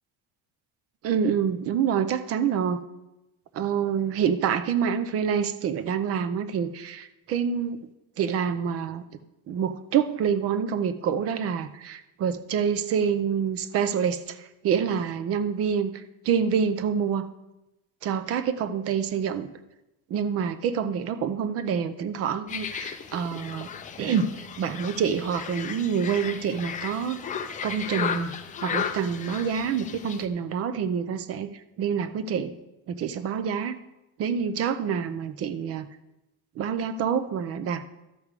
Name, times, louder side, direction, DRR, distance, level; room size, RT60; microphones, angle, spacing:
voice 1, 1.0-2.8 3.5-7.8 8.2-9.0 9.5-15.9 16.2-17.3 18.0-19.5 20.1-23.7 24.0-27.2 27.6-28.3 28.6-31.5 31.8-32.5 32.9-33.8 34.2-35.9 36.6-37.9, right 7 dB, 35° right, 12 dB, 0.6 m, -27 dB
sound 1, 22.5-30.3, left 7 dB, 20° left, 0.4 m, -35 dB
13.0 x 7.0 x 4.8 m, 0.95 s
cardioid pair, 180°, 39 cm